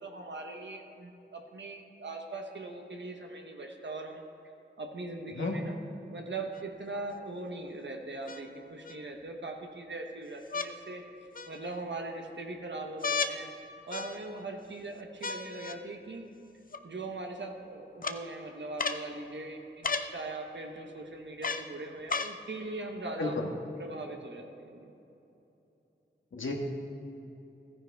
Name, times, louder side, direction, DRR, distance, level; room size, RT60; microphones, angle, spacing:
voice 1, 0.0-4.2 4.8-5.8 6.1-11.0 11.5-13.5 13.9-16.3 16.8-23.4 23.8-24.9, right 2 dB, 65° right, 2 dB, 1.1 m, -40 dB
sound 1, 6.5-6.6 8.3-9.0 10.5-10.7 11.3-11.9 13.0-13.4 13.9-14.5 15.2-15.8 16.7-16.8 18.0-18.2 18.8-19.0 19.8-20.1 21.4-21.7 22.1-22.4 23.2-23.3, left 4 dB, 45° left, 0.6 m, -34 dB
voice 2, 23.2-23.5 26.3-26.5, left 3 dB, 80° left, 1 dB, 1.5 m, -32 dB
14.0 x 9.9 x 3.5 m, 2.9 s
wide cardioid pair, 55°, 20 cm